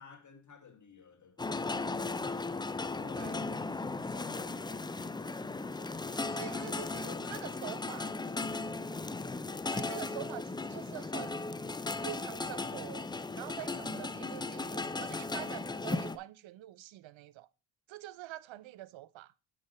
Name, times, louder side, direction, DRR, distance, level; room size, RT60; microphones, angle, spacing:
voice 1, 0.0-2.0 2.8-6.5 6.9-8.8, left 6 dB, 40° left, 2.2 m, -55 dB
sound 1, 1.4-16.2, left 3 dB, 10° left, 0.3 m, -36 dB
voice 2, 6.3-8.1 9.6-11.5 12.0-13.1 13.3-17.5 17.9-19.3, right 15 dB, 75° right, 0.6 m, -45 dB
6.8 x 6.4 x 4.1 m
cardioid pair, 70°, 47 cm